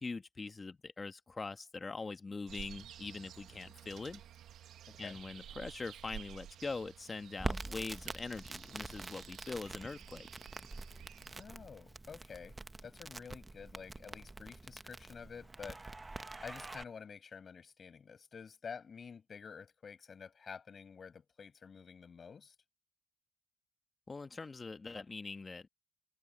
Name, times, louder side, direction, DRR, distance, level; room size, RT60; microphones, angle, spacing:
voice 1, 0.0-4.2 5.0-10.3 24.1-25.7, left 3 dB, 30° left, 1.3 m, -43 dB
sound 1, 2.5-11.4, right 10 dB, 75° right, 1.3 m, -52 dB
voice 2, 4.9-5.2 11.4-15.8 16.4-22.6, left 6 dB, 45° left, 7.1 m, -50 dB
Crackle, 7.4-16.8, right 2 dB, 20° right, 1.0 m, -45 dB
cardioid pair, 90°, 0 cm